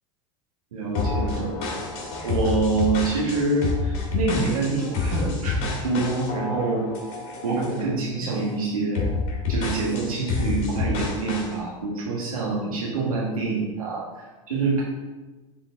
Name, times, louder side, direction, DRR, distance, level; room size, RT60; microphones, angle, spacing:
voice 1, 0.7-1.6 2.2-6.9 7.4-9.1 9.5-14.8, right 3 dB, 85° right, -6 dB, 1.5 m, -26 dB
sound 1, 0.9-7.9 8.3-8.5 8.9-11.5, left 3 dB, 55° left, 2.0 m, -28 dB
6.9 x 3.9 x 3.6 m, 1.2 s
hypercardioid pair, 90°, 18 cm